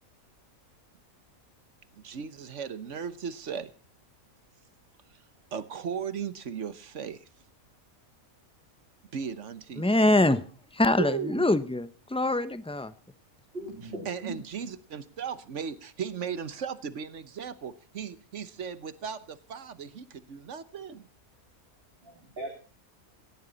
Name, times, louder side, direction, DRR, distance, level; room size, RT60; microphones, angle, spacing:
voice 1, 1.9-3.7 5.1-5.2 5.5-7.3 9.1-9.9 11.0-11.5 14.0-21.1, right 7 dB, 60° right, 14 dB, 1.3 m, -36 dB
voice 2, 9.8-10.4 10.7-12.9, left 2 dB, 5° left, 13 dB, 0.6 m, -24 dB
voice 3, 13.5-14.4 22.0-22.5, right 2 dB, 45° right, -2 dB, 3.7 m, -39 dB
17.5 x 15.0 x 4.1 m, 0.35 s
omnidirectional pair, 1.5 m